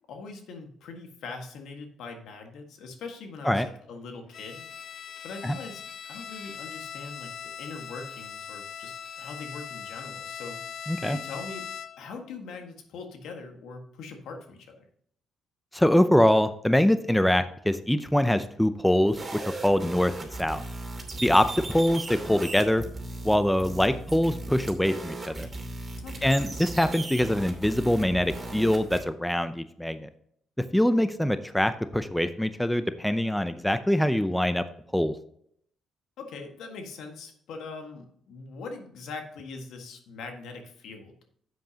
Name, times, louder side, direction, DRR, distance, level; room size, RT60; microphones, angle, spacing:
voice 1, 0.1-5.8 6.1-11.7 12.0-14.8 26.0-26.4 36.2-41.2, left 4 dB, 80° left, 4 dB, 1.7 m, -42 dB
Bowed string instrument, 4.3-12.2, left 8 dB, 60° left, 0.5 m, -40 dB
voice 2, 10.9-11.2 15.7-20.1 20.4-20.6 21.2-22.8 23.2-25.5 26.2-30.1 30.7-34.6 34.9-35.1, left 1 dB, 5° left, 11 dB, 0.6 m, -24 dB
sound 1, 19.1-29.0, right 2 dB, 25° right, 2.9 m, -37 dB
10.5 x 8.0 x 2.9 m, 0.67 s
cardioid pair, 90°, 0 cm